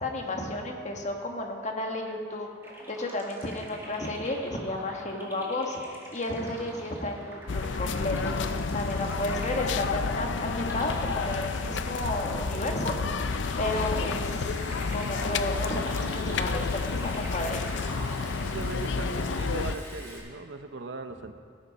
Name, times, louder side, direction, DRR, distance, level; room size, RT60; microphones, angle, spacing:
voice 1, 0.0-2.5 2.9-5.8 6.1-8.4 8.7-14.6 14.9-17.6, left 1 dB, 35° left, 2 dB, 1.3 m, -32 dB
sound 1, 2.6-19.0, right 1 dB, 15° right, 1.9 m, -46 dB
sound 2, 7.5-19.8, left 4 dB, 65° left, 0.5 m, -30 dB
Liquid, 12.1-20.2, equal, 10° left, 2.3 m, -47 dB
voice 2, 18.4-21.3, right 3 dB, 70° right, 8 dB, 0.7 m, -38 dB
17.5 x 10.0 x 4.1 m, 2.1 s
head